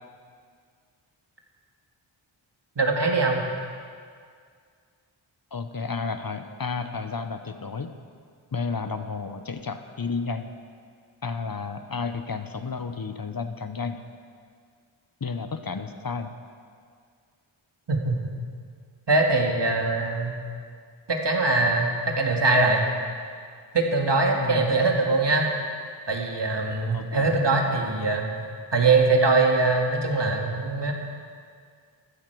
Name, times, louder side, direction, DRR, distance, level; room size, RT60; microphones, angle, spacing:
voice 1, 2.8-3.4 17.9-18.3 19.1-20.3 21.1-22.9 23.7-25.5 26.1-28.3 28.7-30.9, right 3 dB, 55° right, 1 dB, 2.0 m, -22 dB
voice 2, 5.5-7.9 8.5-10.5 11.2-14.0 15.2-16.3 24.3-24.7 26.9-27.4, left 4 dB, 45° left, 8 dB, 0.8 m, -32 dB
14.5 x 14.5 x 4.7 m, 2.1 s
wide cardioid pair, 80°, 50 cm